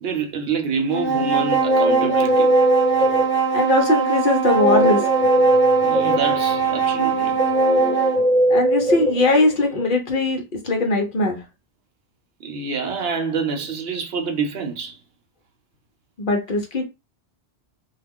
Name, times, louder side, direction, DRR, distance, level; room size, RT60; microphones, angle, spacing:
voice 1, 0.0-2.5 5.8-7.4 12.4-15.0, right 5 dB, 65° right, 0.8 m, -27 dB
sound 1, 0.9-8.3, right 7 dB, 10° left, 0.8 m, -22 dB
Guitar, 1.1-3.7 4.4-9.9, equal, 35° right, 0.8 m, -21 dB
voice 2, 3.5-5.0 8.5-11.4 16.2-16.9, left 2 dB, 55° left, 0.8 m, -20 dB
2.3 x 2.3 x 3.5 m
omnidirectional pair, 1.1 m